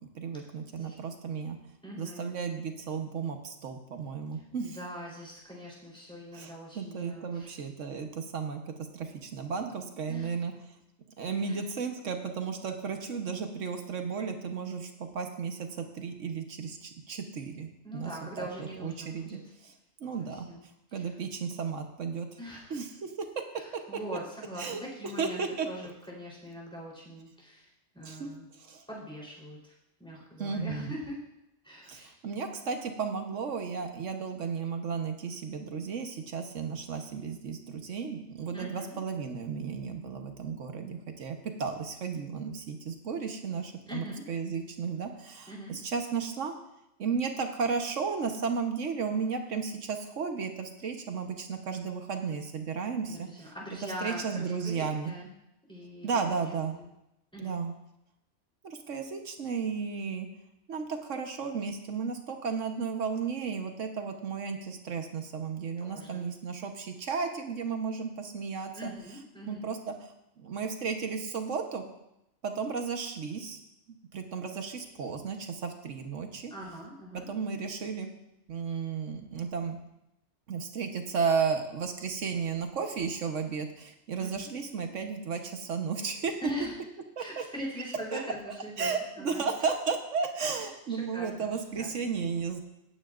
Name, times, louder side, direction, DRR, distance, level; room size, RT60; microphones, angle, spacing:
voice 1, 0.0-1.6 2.0-4.8 6.3-10.5 11.2-18.1 18.4-19.7 20.0-20.5 20.9-22.3 22.7-23.1 24.6-24.8 25.2-25.7 28.0-28.3 28.6-28.8 30.4-30.9 31.9-46.5 47.0-53.3 53.8-55.1 56.0-56.8 57.4-57.7 58.6-60.3 60.7-68.9 69.5-71.8 72.4-73.6 74.1-76.5 77.3-78.1 78.5-79.8 80.5-86.3 87.2-87.4 88.1-88.2 88.8-92.6, right 5 dB, 80° right, 5 dB, 1.4 m, -34 dB
voice 2, 1.8-2.3 4.3-7.6 10.1-10.3 11.4-11.7 17.8-19.4 20.2-20.6 20.9-21.1 22.4-22.8 23.5-27.7 27.9-28.5 28.9-29.7 30.0-31.2 31.6-32.1 38.5-39.0 43.9-44.2 45.5-45.7 53.1-55.3 55.7-56.9 57.3-57.5 65.8-66.2 68.7-69.6 76.5-77.3 84.2-84.4 86.4-86.7 87.2-88.9 89.2-89.4 90.6-91.5 91.8-91.9, equal, 5° left, -5 dB, 3.6 m, -42 dB
17.5 x 9.0 x 2.5 m, 0.85 s
omnidirectional pair, 1.3 m